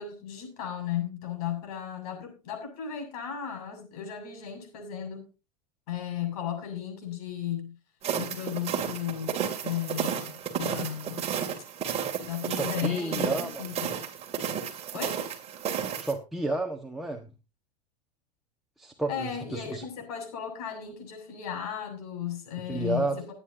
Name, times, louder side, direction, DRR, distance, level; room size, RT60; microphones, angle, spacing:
voice 1, 0.0-5.3 5.9-7.7 8.2-11.3 12.2-14.0 14.9-15.2 19.1-23.3, left 9 dB, 70° left, 7.1 m, -35 dB
sound 1, 8.0-16.1, right 8 dB, 30° right, 2.7 m, -32 dB
voice 2, 12.5-13.8 16.0-17.3 18.8-19.8 22.7-23.3, right 2 dB, ahead, 1.5 m, -32 dB
21.5 x 9.9 x 2.8 m
hypercardioid pair, 115°, 21 cm